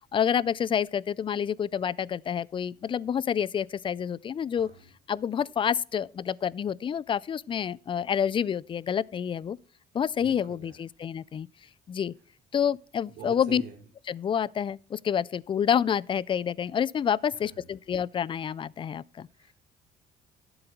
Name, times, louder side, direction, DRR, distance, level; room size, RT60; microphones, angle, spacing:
voice 1, 0.1-4.7 5.1-9.6 9.9-11.5 11.9-12.1 12.5-13.6 14.1-19.3, left 8 dB, 30° left, 0.4 m, -28 dB
voice 2, 4.5-4.9 10.1-10.8 13.1-13.8 17.3-17.7 19.3-19.5, right 7 dB, 75° right, 3.8 m, -46 dB
11.5 x 7.9 x 4.5 m
cardioid pair, 110°, 17 cm